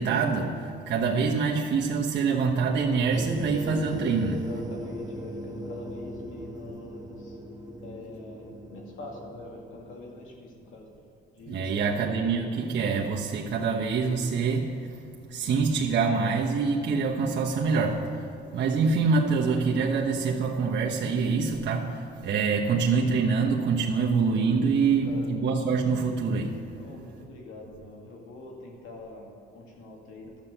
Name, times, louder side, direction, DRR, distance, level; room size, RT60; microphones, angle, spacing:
voice 1, 0.0-4.4 11.5-14.9 15.3-18.3 18.5-26.6, right 5 dB, 65° right, -2 dB, 1.2 m, -25 dB
sound 1, 3.1-10.3, equal, 15° right, 1.3 m, -39 dB
voice 2, 4.1-7.4 7.8-10.9 11.3-12.3 24.8-25.3 26.7-30.4, left 2 dB, 90° left, 0 dB, 2.2 m, -44 dB
12.0 x 7.4 x 6.7 m, 2.4 s
cardioid pair, 90°, 20 cm